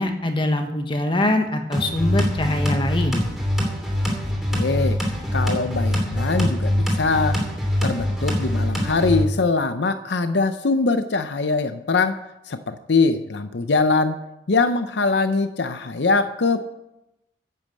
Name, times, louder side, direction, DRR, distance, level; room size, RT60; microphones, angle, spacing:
voice 1, 0.0-3.3, left 1 dB, 25° left, 5 dB, 1.2 m, -23 dB
sound 1, 1.7-9.2, equal, ahead, 2.8 m, -23 dB
voice 2, 4.5-5.0 5.3-7.4 7.8-14.2 14.5-16.6, left 3 dB, 65° left, 9 dB, 0.7 m, -22 dB
11.0 x 8.4 x 7.6 m, 0.90 s
head